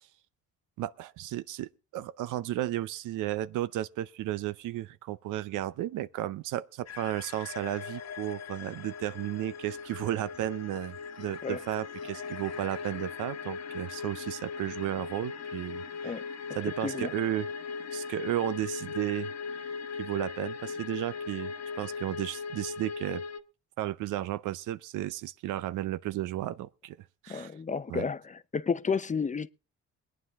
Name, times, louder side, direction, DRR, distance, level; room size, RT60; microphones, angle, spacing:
voice 1, 0.8-16.2 16.5-17.5 17.9-19.7 20.0-23.2 23.8-27.0 27.2-27.5 27.9-28.1, right 14 dB, 85° right, 0.6 m, -34 dB
sound 1, 6.9-23.4, left 5 dB, 60° left, 1.2 m, -39 dB
voice 2, 27.3-29.5, left 5 dB, 25° left, 0.6 m, -31 dB
22.0 x 9.4 x 3.5 m
cardioid pair, 90°, 30 cm